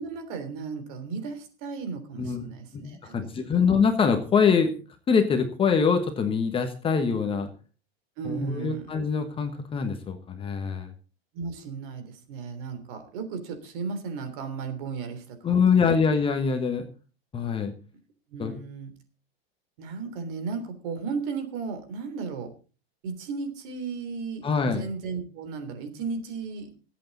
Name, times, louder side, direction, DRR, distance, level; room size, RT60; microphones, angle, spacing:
voice 1, 0.0-3.7 8.2-8.9 11.3-15.9 18.3-18.9 19.8-22.5 23.0-26.8, right 5 dB, 50° right, 8 dB, 3.4 m, -35 dB
voice 2, 2.2-2.5 2.7-4.7 5.1-7.5 8.2-10.9 15.4-16.8 17.3-17.7 18.4-18.6 24.4-24.8, left 6 dB, 15° left, 6 dB, 1.4 m, -24 dB
22.0 x 8.4 x 4.1 m, 0.35 s
supercardioid pair, 150°, 32 cm